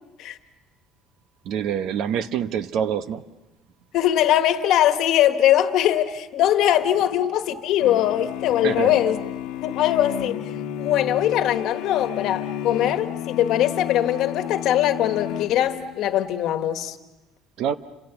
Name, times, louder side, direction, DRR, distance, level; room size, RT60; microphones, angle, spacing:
voice 1, 1.4-3.2 8.6-9.0 17.6-17.7, right 8 dB, 55° right, 0.9 m, -25 dB
voice 2, 3.9-9.2 9.6-10.4 10.8-17.0, left 11 dB, 55° left, 1.5 m, -21 dB
sound 1, 7.8-16.1, left 11 dB, 90° left, 1.3 m, -32 dB
30.0 x 27.0 x 7.0 m
cardioid pair, 170°, 0 cm